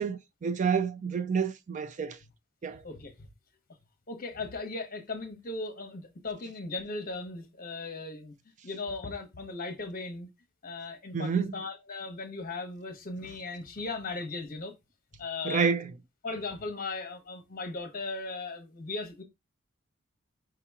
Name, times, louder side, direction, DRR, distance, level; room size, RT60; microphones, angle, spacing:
voice 1, 0.0-2.2 2.6-2.8 11.1-11.5 15.4-15.9, right 6 dB, 35° right, 0.3 m, -29 dB
voice 2, 2.8-3.3 4.1-8.3 8.6-10.3 10.6-14.7 15.1-15.7 16.2-19.2, left 3 dB, 40° left, 1.0 m, -37 dB
4.7 x 2.9 x 3.5 m
head